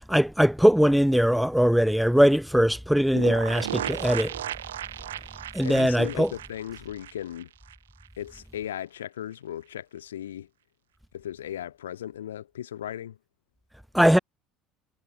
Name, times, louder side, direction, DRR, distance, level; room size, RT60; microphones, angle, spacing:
voice 1, 0.1-4.3 5.5-6.3 13.9-14.2, equal, ahead, 0.3 m, -21 dB
sound 1, 3.1-7.8 8.0-8.1 8.4-8.5, right 11 dB, 70° right, 1.8 m, -35 dB
voice 2, 5.6-7.5 8.2-10.5 11.1-13.2, left 11 dB, 75° left, 2.6 m, -36 dB
figure-of-eight pair, 60°, 0 cm